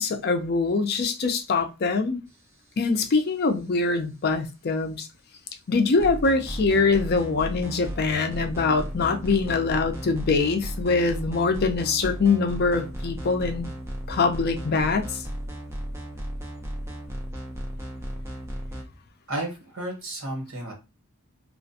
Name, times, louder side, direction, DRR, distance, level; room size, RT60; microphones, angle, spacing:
voice 1, 0.0-2.2 2.8-5.1 5.7-13.7 14.1-15.2, left 4 dB, 50° left, 0.4 m, -23 dB
sound 1, 6.0-18.8, equal, 15° right, 0.5 m, -35 dB
voice 2, 19.3-20.7, right 1 dB, 80° right, 1.2 m, -32 dB
2.4 x 2.2 x 2.6 m
head